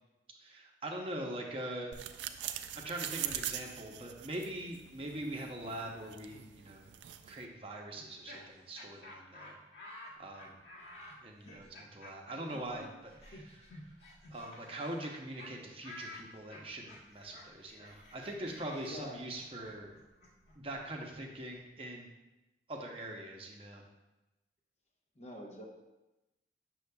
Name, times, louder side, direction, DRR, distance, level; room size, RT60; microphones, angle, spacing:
voice 1, 0.4-1.9 2.5-6.9 7.3-9.6 10.2-10.6 11.2-13.7 14.3-19.9 20.5-22.1 22.7-23.8, right 1 dB, 30° right, 0 dB, 0.7 m, -42 dB
sound 1, 1.9-7.5, right 11 dB, 90° right, 0.4 m, -43 dB
Laughter, 8.0-15.1 15.4-15.5 15.8-21.6, left 1 dB, 80° left, 1.9 m, -52 dB
voice 2, 18.8-19.3 25.2-25.6, equal, 40° left, 0 dB, 0.8 m, -46 dB
8.0 x 6.2 x 2.3 m, 1.0 s
head